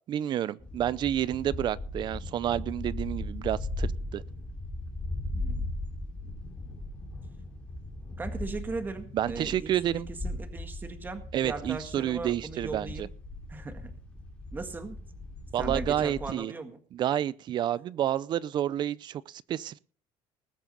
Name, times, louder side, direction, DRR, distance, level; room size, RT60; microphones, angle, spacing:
voice 1, 0.1-4.2 9.1-10.1 11.3-13.1 15.5-16.5 16.9-19.8, right 11 dB, 40° right, 20 dB, 0.6 m, -29 dB
sound 1, 0.6-16.3, left 2 dB, 10° left, 3.0 m, -38 dB
voice 2, 5.3-5.7 8.2-13.1 13.5-13.9 14.5-15.0 15.6-16.8, right 3 dB, 15° right, 7 dB, 1.8 m, -38 dB
20.0 x 7.5 x 5.3 m, 0.42 s
cardioid pair, 155°, 12 cm